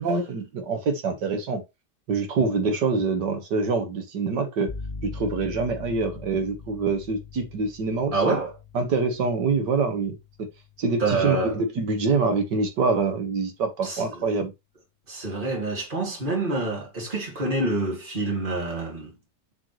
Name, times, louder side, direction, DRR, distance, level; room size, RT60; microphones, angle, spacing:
voice 1, 0.0-1.6 2.1-4.7 5.0-8.4 8.7-10.5 10.8-14.5, right 4 dB, 70° right, 2.1 m, -25 dB
sound 1, 4.7-12.4, left 4 dB, 15° left, 1.4 m, -42 dB
voice 2, 8.1-8.6 11.0-11.6 13.8-14.4 15.1-19.1, right 2 dB, 30° right, 2.8 m, -27 dB
7.8 x 4.9 x 3.2 m
omnidirectional pair, 1.9 m